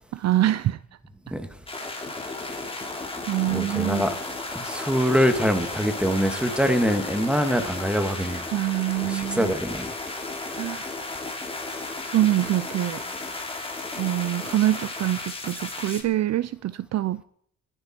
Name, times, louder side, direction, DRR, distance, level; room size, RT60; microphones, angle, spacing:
voice 1, 0.1-0.8 3.3-4.0 8.5-9.5 10.5-11.0 12.0-13.0 14.0-17.2, right 14 dB, 60° right, 0.6 m, -25 dB
sound 1, 1.7-16.0, left 2 dB, 20° left, 3.0 m, -34 dB
voice 2, 3.5-4.1 4.5-8.5 9.1-9.9, equal, 5° right, 2.1 m, -24 dB
21.0 x 10.5 x 4.6 m
cardioid pair, 90°, 30 cm